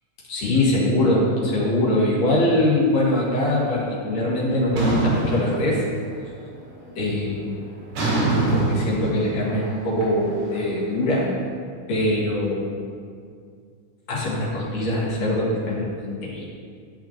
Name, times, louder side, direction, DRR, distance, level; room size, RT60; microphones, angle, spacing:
voice 1, 0.3-5.8 7.0-7.5 8.5-11.3 11.9-12.8 14.1-16.4, left 1 dB, 60° left, -7 dB, 2.9 m, -22 dB
sound 1, 4.7-6.3 6.6-7.1 7.9-11.0, right 2 dB, 85° right, 3.6 m, -24 dB
12.5 x 5.6 x 2.9 m, 2.2 s
omnidirectional pair, 3.5 m